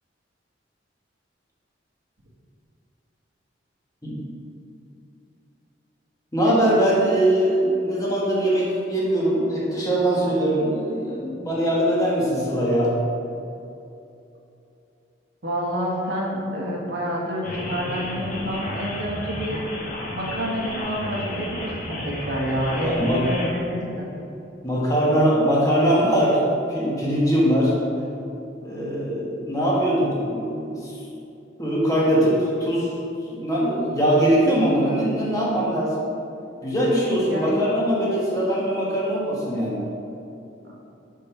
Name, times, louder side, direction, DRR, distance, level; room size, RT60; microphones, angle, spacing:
voice 1, 4.0-4.3 6.3-13.0 22.7-23.3 24.6-27.7 28.6-31.0 31.6-33.0 33.3-36.0 36.6-39.8, right 1 dB, 20° left, -6 dB, 1.3 m, -21 dB
voice 2, 15.4-19.6 20.1-24.1 37.3-37.5, equal, 75° right, -3 dB, 1.3 m, -28 dB
sound 1, 17.4-23.5, left 1 dB, 45° left, 1.0 m, -32 dB
5.3 x 3.8 x 5.7 m, 2.7 s
head